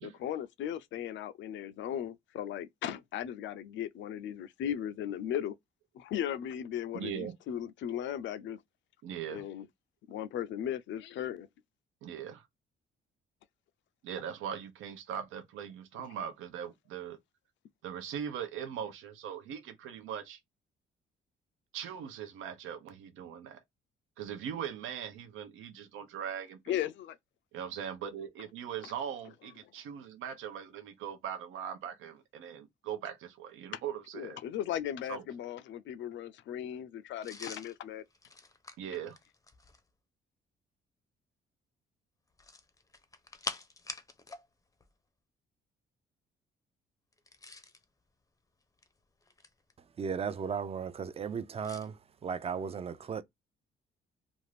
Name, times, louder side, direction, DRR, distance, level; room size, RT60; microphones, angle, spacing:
voice 1, 0.0-5.6 5.9-8.6 9.3-9.7 10.1-11.5 26.7-27.2 34.1-38.0, left 10 dB, 70° left, 0.4 m, -37 dB
voice 2, 6.9-7.3 9.0-9.4 12.0-12.5 14.0-17.2 17.8-20.4 21.7-23.6 24.2-26.8 27.5-34.4 35.1-35.2 38.8-39.2, right 8 dB, 85° right, 0.7 m, -40 dB
sound 1, 37.2-39.9 42.3-44.5 44.7-44.9 47.1-47.8 48.6-49.7 51.6-51.9, left 3 dB, 15° left, 0.5 m, -45 dB
voice 3, 50.0-51.9 52.2-53.2, right 6 dB, 30° right, 0.4 m, -35 dB
2.5 x 2.4 x 3.2 m
cardioid pair, 90°, 20 cm